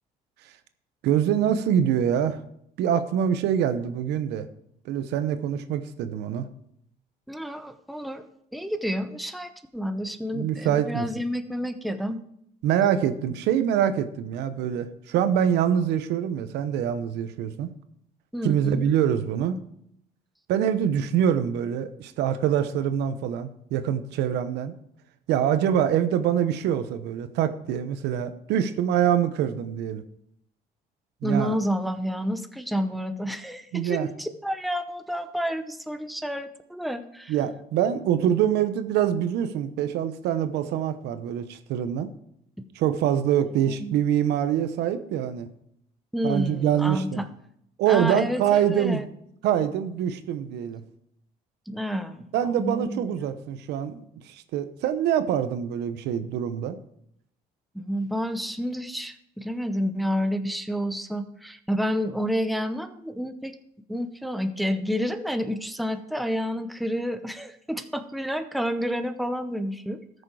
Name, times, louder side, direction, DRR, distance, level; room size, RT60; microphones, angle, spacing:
voice 1, 1.0-2.4 2.8-4.4 4.8-6.5 10.3-11.1 12.6-17.7 18.4-19.6 20.5-24.8 25.3-30.0 31.2-31.6 33.7-34.1 37.3-42.1 42.7-45.5 46.2-47.2 47.8-49.0 49.4-50.8 52.3-56.8, right 9 dB, 85° right, 10 dB, 0.9 m, -25 dB
voice 2, 7.3-12.2 18.3-18.9 31.2-37.3 43.7-43.9 46.1-47.3 47.9-49.0 51.7-52.3 52.6-53.0 57.7-63.6 63.9-70.0, equal, ahead, 8 dB, 0.8 m, -29 dB
13.5 x 6.5 x 4.8 m, 0.73 s
cardioid pair, 110°, 17 cm